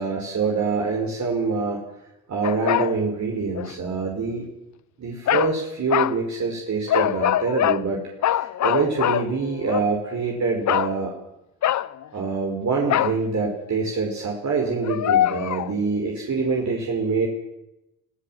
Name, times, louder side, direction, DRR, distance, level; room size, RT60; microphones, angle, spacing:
voice 1, 0.0-1.8 2.3-4.5 5.0-11.1 12.1-17.3, right 4 dB, 40° right, -1 dB, 5.4 m, -25 dB
sound 1, 2.4-3.0 3.5-3.7 5.3-5.5 5.9-6.2 6.9-7.8 8.2-9.9 10.7-10.9 11.6-12.0 12.9-13.2 14.8-15.7, left 12 dB, 45° left, 0.9 m, -23 dB
26.0 x 16.0 x 7.7 m, 0.91 s
hypercardioid pair, 60°, 42 cm